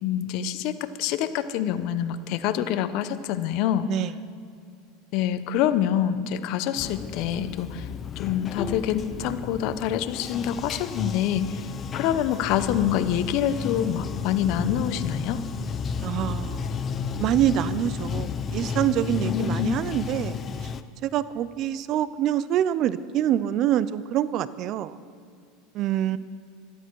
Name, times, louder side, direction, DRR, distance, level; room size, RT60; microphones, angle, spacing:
voice 1, 0.0-3.9 5.1-7.9 8.2-11.7 11.9-15.4 19.2-19.8, left 10 dB, 60° left, 12 dB, 0.9 m, -26 dB
Bathtub (filling or washing), 6.8-20.8, left 6 dB, 30° left, 0.6 m, -32 dB
voice 2, 16.0-16.7 17.2-20.7 21.0-25.0 25.7-26.2, right 11 dB, 50° right, 16 dB, 0.6 m, -26 dB
17.0 x 12.5 x 4.7 m, 2.3 s
supercardioid pair, 120°, 0 cm